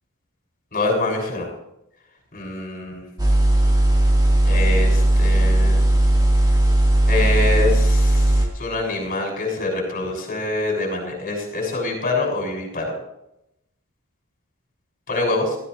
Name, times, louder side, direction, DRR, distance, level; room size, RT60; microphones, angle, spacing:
voice 1, 0.7-1.5 2.3-3.0 4.5-5.8 7.1-8.2 8.6-12.9 15.1-15.5, left 2 dB, 40° left, -2 dB, 6.4 m, -25 dB
sound 1, 3.2-8.5, right 1 dB, 20° right, 2.3 m, -17 dB
18.5 x 14.0 x 3.3 m, 0.82 s
head